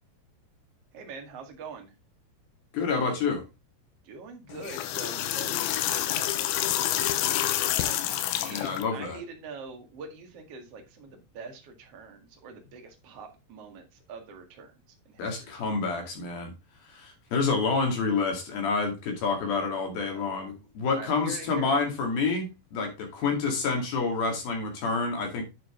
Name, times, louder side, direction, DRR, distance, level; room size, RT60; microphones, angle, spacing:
voice 1, 0.9-1.9 4.0-8.0 8.4-14.7 15.1-15.5 20.1-20.6 20.9-21.8, right 5 dB, 45° right, 3 dB, 2.1 m, -44 dB
voice 2, 2.7-3.4 8.5-9.2 15.2-16.5 16.9-25.4, left 4 dB, 55° left, 2 dB, 3.8 m, -28 dB
sound 1, 4.5-8.8, left 13 dB, 85° left, 3.1 m, -28 dB
9.0 x 6.6 x 3.7 m, 0.25 s
omnidirectional pair, 5.3 m